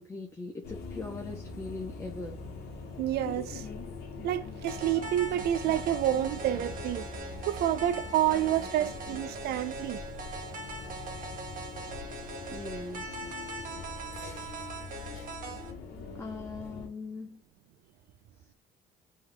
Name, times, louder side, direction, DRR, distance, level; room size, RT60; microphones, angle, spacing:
voice 1, 0.0-2.4 12.5-13.3 16.1-17.4, left 3 dB, 15° left, 0.6 m, -40 dB
sound 1, 0.6-16.9, left 4 dB, 75° left, 1.1 m, -42 dB
voice 2, 3.0-3.7 4.2-7.1 7.5-10.0, right 12 dB, 70° right, 0.5 m, -29 dB
sound 2, 4.7-15.7, right 3 dB, 55° right, 1.2 m, -41 dB
3.8 x 3.1 x 3.4 m
cardioid pair, 110°, 17 cm